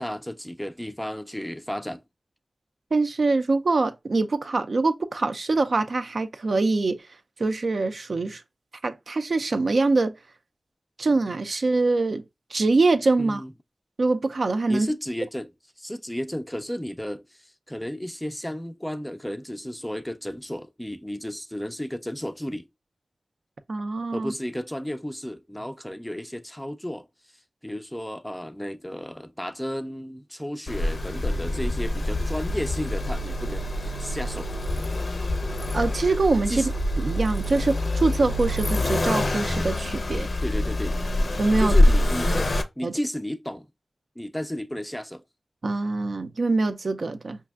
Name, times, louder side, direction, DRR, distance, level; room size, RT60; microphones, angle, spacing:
voice 1, 0.0-2.0 13.2-13.5 14.7-15.5 15.8-22.7 24.1-27.1 27.6-34.5 36.5-36.7 40.4-41.0 41.6-43.7 44.2-45.2, equal, 10° left, 0.3 m, -33 dB
voice 2, 2.9-7.0 7.4-8.4 8.8-10.1 11.0-12.2 12.5-13.4 14.0-14.9 23.7-24.3 35.7-36.7 37.0-40.3 41.4-41.8 42.8-42.9 45.6-47.4, right 3 dB, 70° right, 0.4 m, -24 dB
Accelerating revving vroom, 30.7-42.6, left 1 dB, 70° left, 0.5 m, -25 dB
5.2 x 2.4 x 2.3 m
wide cardioid pair, 60°, 0 cm